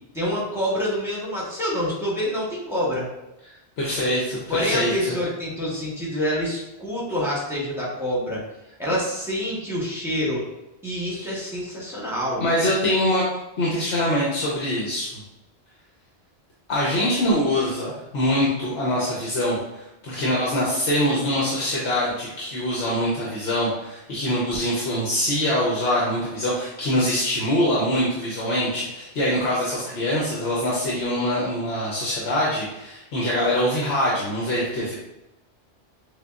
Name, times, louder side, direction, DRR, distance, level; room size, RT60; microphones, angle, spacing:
voice 1, 0.1-3.1 4.5-8.4 8.8-10.4 10.8-12.5, equal, ahead, -6 dB, 1.1 m, -27 dB
voice 2, 3.8-5.2 12.4-13.2 13.6-15.1 16.7-34.9, left 1 dB, 75° left, -6 dB, 1.1 m, -24 dB
6.5 x 2.2 x 2.4 m, 0.93 s
omnidirectional pair, 1.1 m